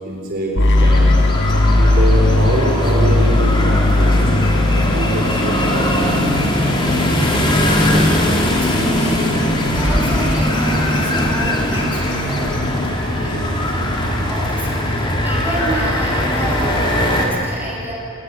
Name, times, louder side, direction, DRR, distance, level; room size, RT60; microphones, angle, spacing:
voice 1, 0.0-1.2 1.7-4.2 4.7-6.2, right 1 dB, 50° right, -2 dB, 4.0 m, -24 dB
sound 1, 0.6-6.5, left 2 dB, 55° left, 1.4 m, -16 dB
sound 2, 0.8-17.3, left 1 dB, 25° left, 3.2 m, -19 dB
voice 2, 7.1-9.4 9.7-14.0 14.3-17.9, right 1 dB, 10° right, -4 dB, 6.6 m, -30 dB
28.0 x 19.0 x 7.5 m, 2.9 s
head